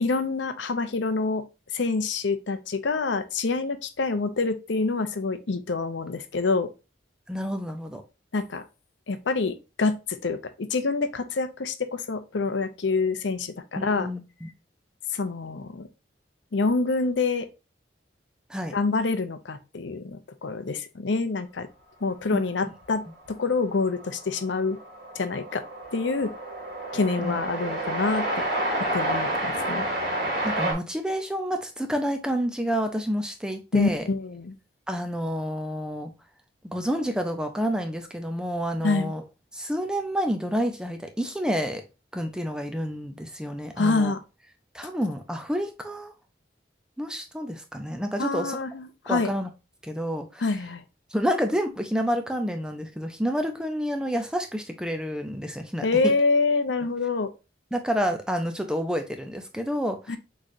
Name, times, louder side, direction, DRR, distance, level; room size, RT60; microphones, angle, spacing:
voice 1, 0.0-1.4 1.7-6.7 8.3-8.6 9.1-14.1 15.1-15.9 16.5-17.5 18.7-21.7 22.0-24.8 25.2-25.6 25.9-26.3 26.9-28.3 28.8-29.9 33.7-34.6 38.8-39.1 43.8-44.2 48.2-49.3 50.4-50.8 55.8-57.3 60.1-60.2, left 3 dB, 80° left, 0.7 m, -26 dB
voice 2, 7.3-8.0 13.8-14.5 18.5-18.8 27.2-27.4 30.4-34.1 34.9-36.1 36.6-39.2 39.5-41.8 42.1-44.1 44.7-46.1 47.0-48.6 49.1-49.5 49.8-50.4 51.1-56.1 57.7-60.2, equal, 5° right, 0.5 m, -29 dB
Train, 23.3-23.4 23.6-30.7, right 1 dB, 55° right, 1.9 m, -29 dB
6.2 x 3.2 x 2.7 m
head